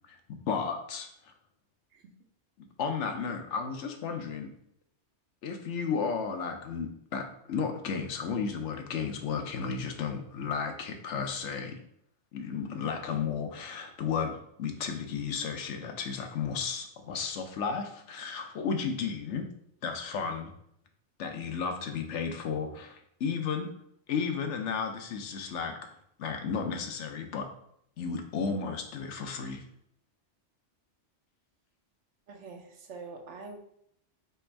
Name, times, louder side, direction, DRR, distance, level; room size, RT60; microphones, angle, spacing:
voice 1, 0.1-1.3 2.6-4.5 5.4-11.8 12.3-19.5 19.8-20.5 21.2-23.7 24.1-25.8 26.2-27.5 28.0-29.6, left 6 dB, 75° left, 5 dB, 1.0 m, -33 dB
voice 2, 32.3-33.6, right 4 dB, 75° right, 4 dB, 1.0 m, -45 dB
3.4 x 3.0 x 4.5 m, 0.71 s
omnidirectional pair, 1.2 m